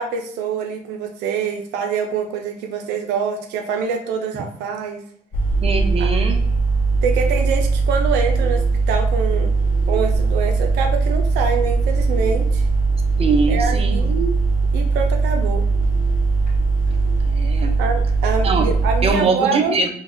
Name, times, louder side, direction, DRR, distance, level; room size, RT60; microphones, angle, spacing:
voice 1, 0.0-5.0 6.0-6.1 7.0-9.5 9.9-12.6 13.5-14.3 14.7-15.6 17.8-19.8, right 6 dB, 90° right, 3 dB, 0.5 m, -25 dB
sound 1, 5.3-19.1, right 4 dB, 50° left, 0.9 m, -19 dB
voice 2, 5.6-6.4 13.2-14.1 17.3-17.7 18.4-18.7 19.0-19.9, right 4 dB, 35° right, 5 dB, 0.6 m, -22 dB
3.8 x 2.2 x 2.6 m, 0.64 s
cardioid pair, 110°, 17 cm